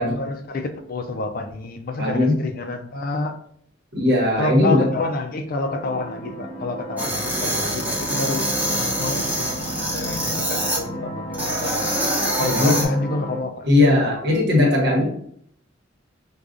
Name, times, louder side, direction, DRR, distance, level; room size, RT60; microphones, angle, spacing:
voice 1, 0.0-3.3 4.4-9.6 9.9-11.9 12.4-13.7, left 2 dB, 50° left, 5 dB, 0.4 m, -28 dB
voice 2, 2.0-2.4 3.9-4.9 12.4-12.8 13.6-15.1, left 2 dB, 55° right, -1 dB, 1.1 m, -18 dB
sound 1, 5.6-13.4, equal, 30° left, 0.8 m, -33 dB
sound 2, 7.0-10.8 11.3-12.9, right 1 dB, 10° right, 0.8 m, -25 dB
4.7 x 2.3 x 2.5 m, 0.64 s
head